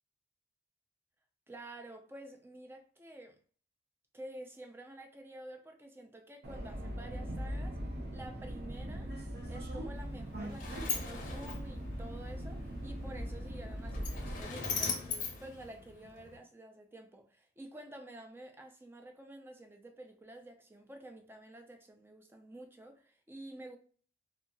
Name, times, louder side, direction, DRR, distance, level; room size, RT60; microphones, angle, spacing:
voice 1, 1.5-3.4 4.1-7.8 8.1-9.1 9.5-23.8, right 1 dB, 10° right, 0.3 m, -50 dB
Subway metro underground, 6.4-14.4, equal, 60° right, 0.6 m, -40 dB
Sliding door, 10.0-16.4, left 5 dB, 45° left, 0.6 m, -41 dB
2.7 x 2.3 x 2.5 m
head